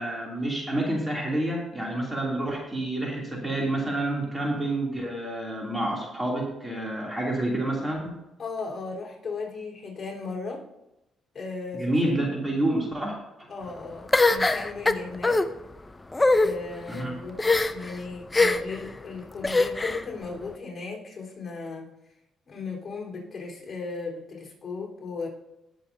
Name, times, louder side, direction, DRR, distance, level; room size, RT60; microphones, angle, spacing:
voice 1, 0.0-8.2 11.7-13.5 16.9-17.1, right 1 dB, 15° right, -2 dB, 2.8 m, -28 dB
voice 2, 8.4-10.6 11.3-12.4 13.5-15.4 16.4-17.4 17.7-21.9 22.5-25.3, left 4 dB, 40° left, -2 dB, 4.0 m, -36 dB
sound 1, 14.1-15.4 16.1-16.5 17.4-17.9 18.3-18.8 19.4-20.0, left 2 dB, 20° left, 0.5 m, -21 dB
19.0 x 7.0 x 2.7 m, 0.91 s
cardioid pair, 90°, 0 cm